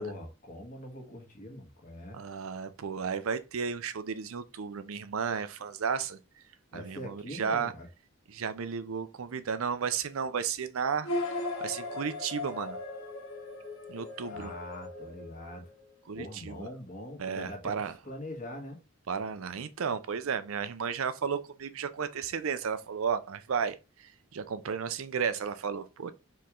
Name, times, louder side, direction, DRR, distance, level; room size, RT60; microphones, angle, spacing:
voice 1, 0.0-2.2 6.7-7.9 14.3-15.6 16.1-18.8, left 1 dB, 40° left, 1.5 m, -42 dB
voice 2, 2.1-6.2 6.7-7.7 8.3-11.1 11.6-12.8 13.9-14.5 16.1-16.7 17.2-17.9 19.1-23.8 24.3-26.1, right 6 dB, 80° right, 0.5 m, -33 dB
sound 1, 11.0-15.9, left 2 dB, 85° left, 1.7 m, -37 dB
4.5 x 3.1 x 3.7 m
head